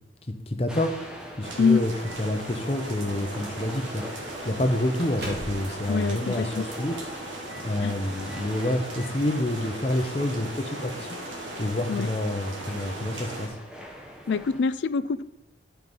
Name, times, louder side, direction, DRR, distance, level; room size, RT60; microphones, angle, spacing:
voice 1, 0.5-0.9 1.4-1.9 2.2-4.0 4.4-6.9 7.6-11.2 11.6-13.5, left 1 dB, 30° left, 5 dB, 0.8 m, -28 dB
sound 1, 0.7-14.6, equal, 5° right, 0.9 m, -44 dB
Microwave oven, 1.0-2.4 3.3-3.6 3.9-4.0 4.4-5.8 6.1-6.2 6.9-7.1 7.4-7.7 8.1-9.1, right 1 dB, 60° right, 2.0 m, -43 dB
sound 2, 1.4-13.5, right 1 dB, 85° right, 1.5 m, -38 dB
voice 2, 5.9-6.6 7.8-7.9 11.9-12.1 14.3-15.2, left 5 dB, 75° left, 14 dB, 0.4 m, -24 dB
9.7 x 4.6 x 5.3 m, 1.0 s
head